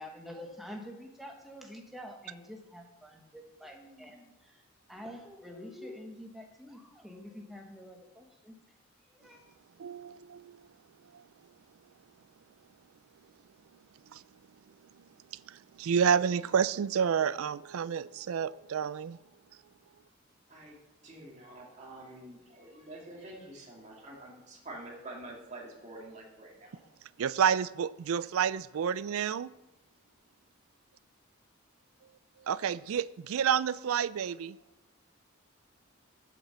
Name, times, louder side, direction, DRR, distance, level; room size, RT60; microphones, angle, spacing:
voice 1, 0.0-4.6 4.9-8.5 9.1-9.4, left 1 dB, ahead, 1.4 m, -47 dB
voice 2, 9.8-10.6 11.1-11.2 14.1-14.2 15.3-19.2 27.2-29.5 32.5-34.6, right 7 dB, 80° right, 0.4 m, -29 dB
voice 3, 21.0-26.7, right 2 dB, 35° right, 2.4 m, -47 dB
8.4 x 7.3 x 6.8 m
head